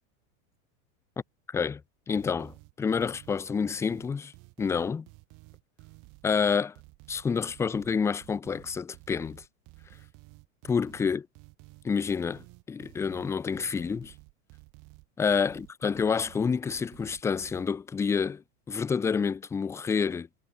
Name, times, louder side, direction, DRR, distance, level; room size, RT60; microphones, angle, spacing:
voice 1, 1.5-1.8 2.1-4.3 4.6-5.1 6.2-6.8 7.1-9.4 10.6-11.3 11.8-14.1 15.2-20.3, left 6 dB, 5° left, 0.4 m, -28 dB
sound 1, 2.2-17.6, right 28 dB, 50° right, 3.7 m, -53 dB
supercardioid pair, 130°, 40 cm